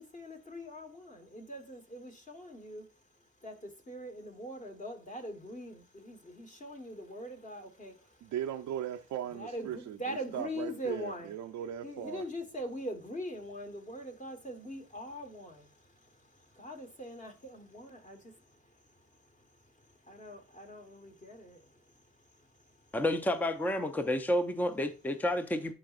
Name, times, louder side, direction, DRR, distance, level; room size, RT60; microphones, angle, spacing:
voice 1, 0.0-8.3 9.2-11.3 11.8-23.0, equal, 25° left, 1.3 m, -43 dB
voice 2, 8.3-12.2, right 10 dB, 70° right, 0.5 m, -38 dB
voice 3, 22.9-25.7, left 1 dB, 5° left, 0.6 m, -30 dB
10.5 x 4.0 x 2.5 m
cardioid pair, 90°, 30 cm